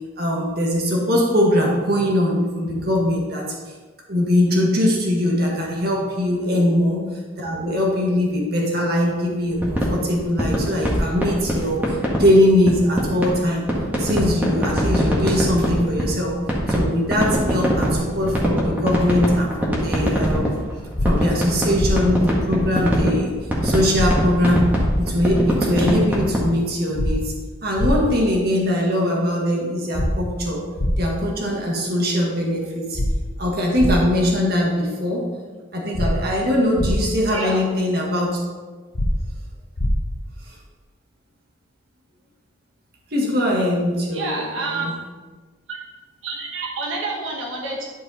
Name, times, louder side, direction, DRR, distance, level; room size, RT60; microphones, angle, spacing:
voice 1, 0.2-3.5 4.1-7.0 7.4-13.6 14.0-16.3 16.7-20.6 21.0-23.3 23.6-27.3 27.6-30.6 31.0-33.0 33.4-35.3 35.7-38.4 43.1-44.9, left 1 dB, 50° right, -2 dB, 1.7 m, -21 dB
sound 1, 9.5-12.2 12.7-13.4 13.7-16.2 16.5-26.5, equal, 10° right, 1.5 m, -22 dB
sound 2, 20.9-21.1 21.8-21.9 23.9-24.1 24.8-24.9 26.9-27.1 27.8-27.9 29.9-30.1 30.8-30.9 32.9-33.1 33.8-33.9 35.9-36.1 36.8-36.9 38.9-39.1 39.8-39.9, left 1 dB, 80° left, 1.1 m, -22 dB
voice 2, 37.3-37.6 44.1-44.9 45.7-45.8 46.2-47.8, right 3 dB, 85° right, -2 dB, 1.3 m, -28 dB
11.0 x 4.8 x 4.2 m, 1.4 s
head